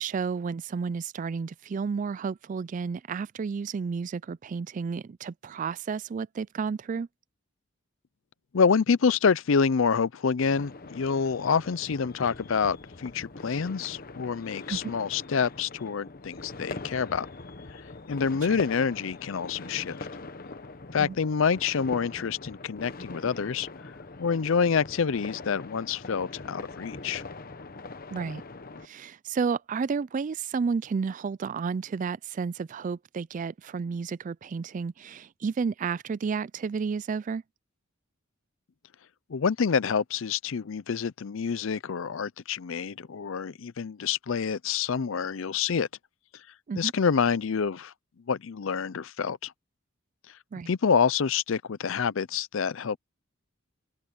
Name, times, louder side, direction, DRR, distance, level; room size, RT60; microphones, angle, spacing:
voice 1, 0.0-7.1 14.7-14.9 18.5-18.6 21.0-21.2 28.1-28.4 28.8-37.4 46.7-46.9 50.5-50.7, right 5 dB, 35° right, 0.3 m, -31 dB
voice 2, 8.5-17.3 17.7-17.8 18.1-20.1 20.9-23.7 24.2-27.2 39.3-45.9 46.7-47.9 48.3-49.5 50.7-53.0, left 6 dB, 65° left, 0.5 m, -27 dB
sound 1, 10.4-28.9, left 3 dB, 45° left, 1.0 m, -42 dB
open air
head